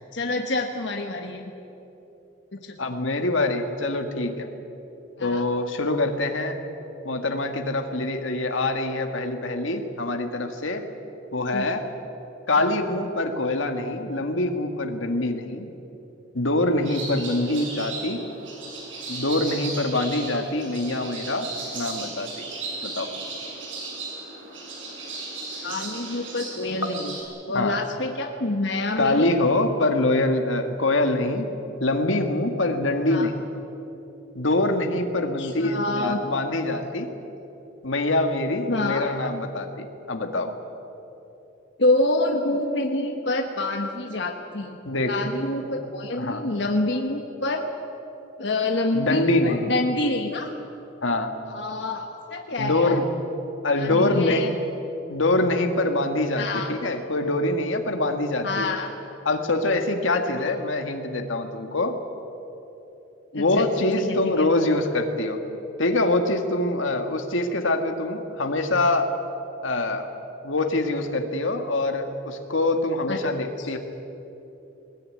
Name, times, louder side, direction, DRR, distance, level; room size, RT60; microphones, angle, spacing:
voice 1, 0.1-1.4 2.7-2.8 5.2-5.4 11.5-11.7 25.6-27.2 27.5-29.4 33.1-33.3 35.4-36.2 38.7-39.1 41.8-44.8 45.1-47.6 48.4-50.5 51.5-53.0 53.8-54.5 56.4-56.8 58.4-58.9 63.3-63.7 63.9-64.4 73.1-73.2 73.6-73.8, left 2 dB, 65° left, 3 dB, 1.5 m, -27 dB
voice 2, 2.8-4.5 5.2-6.6 7.0-10.8 11.3-11.9 12.5-15.7 16.3-18.2 19.1-22.3 22.8-23.1 27.5-27.8 29.0-31.5 31.8-33.3 34.4-37.1 37.8-40.5 44.8-45.2 45.6-45.8 46.2-46.5 48.9-49.7 51.0-51.4 52.6-53.1 53.6-54.5 55.1-58.7 59.3-62.0 63.3-65.4 65.8-69.1 69.6-70.1 70.4-73.8, left 2 dB, 85° left, 5 dB, 1.8 m, -24 dB
sound 1, 16.8-27.2, right 3 dB, 80° right, 6.7 m, -36 dB
20.5 x 20.0 x 9.6 m, 3.0 s
head